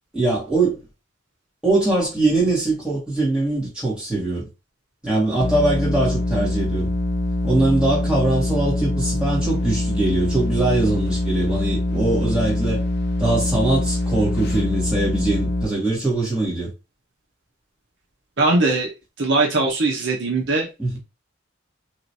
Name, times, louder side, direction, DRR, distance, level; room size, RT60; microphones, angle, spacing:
voice 1, 0.1-0.8 1.6-4.4 5.0-6.9 7.4-12.8 13.2-16.7 20.8-21.0, right 2 dB, 5° right, 1.7 m, -22 dB
sound 1, 5.4-15.7, left 2 dB, 55° left, 0.5 m, -24 dB
voice 2, 18.4-18.9 19.2-20.7, right 2 dB, 60° right, 0.8 m, -20 dB
3.0 x 3.0 x 2.7 m
head